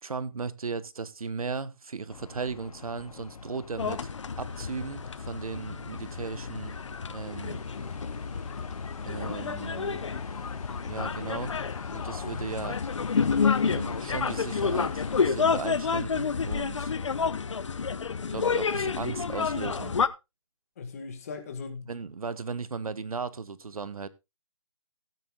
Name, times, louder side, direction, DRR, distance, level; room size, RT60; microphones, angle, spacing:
voice 1, 0.0-4.1 4.4-6.7 7.1-7.6 9.0-10.0 10.9-11.5 11.9-12.8 13.6-16.9 18.3-19.9 21.8-24.1, right 4 dB, 75° right, 1.1 m, -36 dB
sound 1, 2.1-15.3, left 5 dB, 85° left, 0.7 m, -42 dB
sound 2, 3.8-20.1, left 5 dB, 55° left, 0.8 m, -30 dB
sound 3, 7.3-11.5 12.3-12.4, right 6 dB, 10° right, 4.0 m, -60 dB
voice 2, 9.7-10.3 20.8-21.9, left 5 dB, 25° left, 1.7 m, -40 dB
17.0 x 9.4 x 2.3 m
hypercardioid pair, 170°, 18 cm